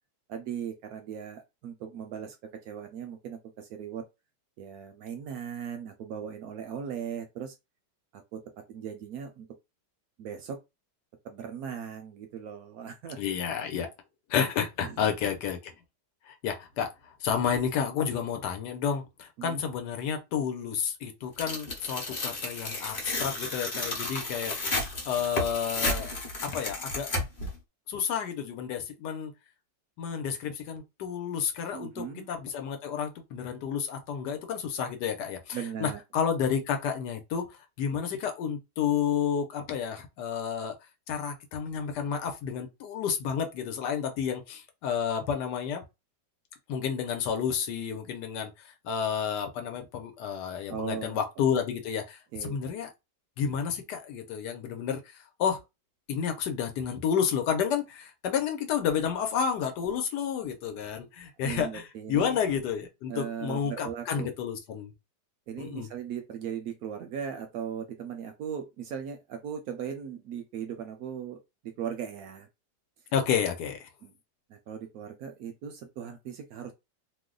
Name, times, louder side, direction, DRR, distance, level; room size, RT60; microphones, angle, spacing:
voice 1, 0.3-4.1 4.6-7.5 8.1-8.4 8.7-9.5 10.2-10.6 11.2-13.2 14.8-15.1 19.4-19.6 31.7-32.3 35.5-36.0 50.7-51.5 52.3-52.6 61.4-62.4 63.1-64.3 65.5-72.5 74.0-74.1 74.5-76.7, right 8 dB, 70° right, 0.9 m, -38 dB
voice 2, 13.2-13.9 14.3-15.7 16.3-16.9 17.2-24.5 25.1-26.1 26.4-27.1 27.9-29.3 30.0-37.4 37.8-40.7 41.1-45.8 46.7-48.5 48.8-52.9 53.4-55.0 55.4-55.6 56.1-64.9 65.6-65.9 73.1-73.9, left 7 dB, 80° left, 1.3 m, -30 dB
Tearing, 21.4-27.5, left 2 dB, 35° left, 0.9 m, -32 dB
2.9 x 2.1 x 3.7 m
omnidirectional pair, 1.9 m